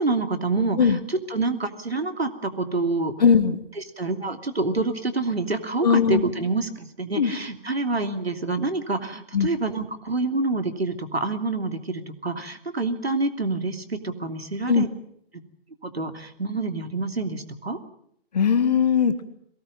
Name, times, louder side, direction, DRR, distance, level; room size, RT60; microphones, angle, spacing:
voice 1, 0.0-3.1 3.8-14.9 15.3-15.4 15.8-17.8, right 3 dB, 75° right, 7 dB, 3.0 m, -27 dB
voice 2, 3.2-3.6 5.8-6.2 7.2-7.3 9.3-9.5 14.7-14.8 18.3-19.2, left 6 dB, 40° left, 12 dB, 1.8 m, -19 dB
22.5 x 18.0 x 8.8 m, 0.68 s
figure-of-eight pair, 140°, 31 cm